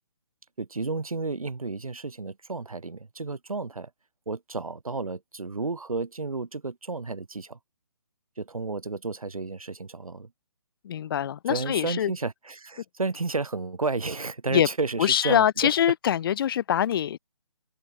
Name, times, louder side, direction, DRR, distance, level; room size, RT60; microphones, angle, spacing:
voice 1, 0.6-3.9 4.3-7.6 8.4-10.3 11.5-15.7, right 3 dB, 90° right, 2.3 m, -32 dB
voice 2, 10.8-12.1 14.5-14.7 15.0-17.2, left 10 dB, 40° left, 3.1 m, -24 dB
figure-of-eight pair, 150°, 18 cm